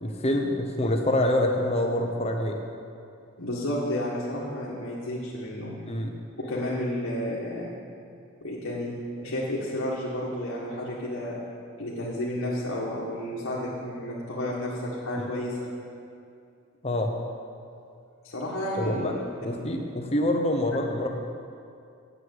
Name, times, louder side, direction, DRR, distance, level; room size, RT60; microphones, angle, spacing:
voice 1, 0.0-2.6 5.9-6.2 15.2-15.4 16.8-17.1 18.8-19.2 19.4-21.1, left 1 dB, 30° left, 3 dB, 0.9 m, -26 dB
voice 2, 3.4-5.8 6.4-7.7 8.4-11.4 11.8-15.7 18.2-19.2, left 1 dB, 80° left, -7 dB, 1.7 m, -31 dB
8.0 x 8.0 x 8.0 m, 2.4 s
head